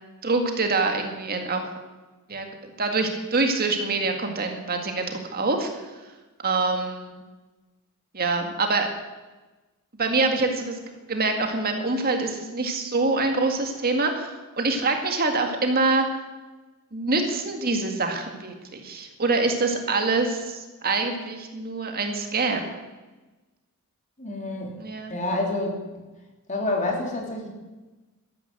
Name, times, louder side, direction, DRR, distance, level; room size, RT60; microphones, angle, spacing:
voice 1, 0.2-1.7 2.3-2.5 2.8-5.9 6.4-7.2 8.1-8.9 10.0-10.8 11.1-16.1 16.9-22.7 24.8-25.2, right 3 dB, 45° right, 4 dB, 2.0 m, -25 dB
voice 2, 24.2-24.7 25.1-26.0 26.5-27.5, left 2 dB, 35° left, 0 dB, 3.3 m, -28 dB
13.0 x 13.0 x 7.8 m, 1.2 s
head